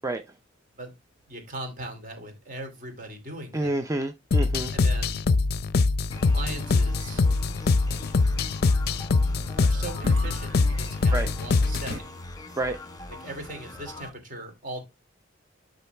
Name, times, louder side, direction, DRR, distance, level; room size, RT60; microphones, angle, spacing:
sound 1, 0.7-12.0, right 1 dB, 90° right, 0.9 m, -47 dB
voice 1, 1.3-3.7 4.7-5.2 6.2-7.2 9.5-12.2 13.1-14.8, right 2 dB, 45° right, 2.8 m, -39 dB
voice 2, 3.5-4.7 11.1-11.3 12.6-12.8, right 2 dB, 15° right, 0.5 m, -28 dB
sound 2, 4.3-12.0, left 3 dB, 55° left, 0.5 m, -23 dB
sound 3, 6.1-14.1, left 2 dB, 20° left, 1.2 m, -42 dB
11.5 x 3.9 x 3.3 m
head